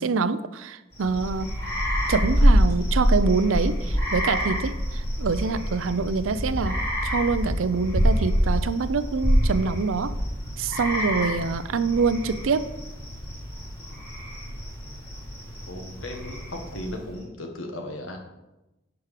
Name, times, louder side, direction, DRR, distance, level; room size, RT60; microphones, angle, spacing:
voice 1, 0.0-1.5 2.1-10.1 10.6-12.7, right 4 dB, 85° right, 14 dB, 0.5 m, -25 dB
sound 1, 0.9-17.1, equal, 15° left, 3.0 m, -26 dB
voice 2, 15.7-18.2, left 1 dB, 85° left, 3 dB, 1.5 m, -36 dB
11.5 x 4.8 x 4.9 m, 1.0 s
head